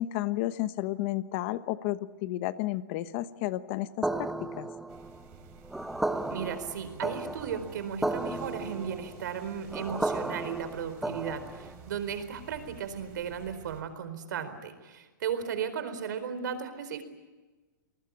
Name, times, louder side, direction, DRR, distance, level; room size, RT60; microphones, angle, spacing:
voice 1, 0.0-4.7, left 15 dB, 40° left, 13 dB, 1.0 m, -32 dB
sound 1, 4.0-11.8, right 2 dB, ahead, 0.8 m, -34 dB
sound 2, 4.9-13.8, right 6 dB, 35° right, 5.9 m, -50 dB
voice 2, 6.3-17.0, right 7 dB, 65° right, 11 dB, 4.4 m, -35 dB
29.0 x 20.0 x 8.5 m, 1.2 s
hypercardioid pair, 155°, 11 cm